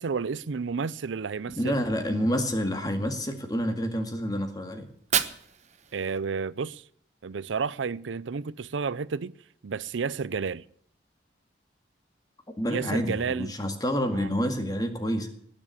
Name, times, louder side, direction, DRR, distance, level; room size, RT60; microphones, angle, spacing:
voice 1, 0.0-1.8 5.9-6.8 7.2-9.4 9.6-10.6 12.7-13.5 14.1-14.3, right 5 dB, 85° right, 0.5 m, -31 dB
voice 2, 1.5-4.9 12.6-15.3, equal, 20° left, 2.1 m, -28 dB
Fire, 4.8-6.8, right 8 dB, 40° right, 1.0 m, -32 dB
19.5 x 7.4 x 8.3 m
head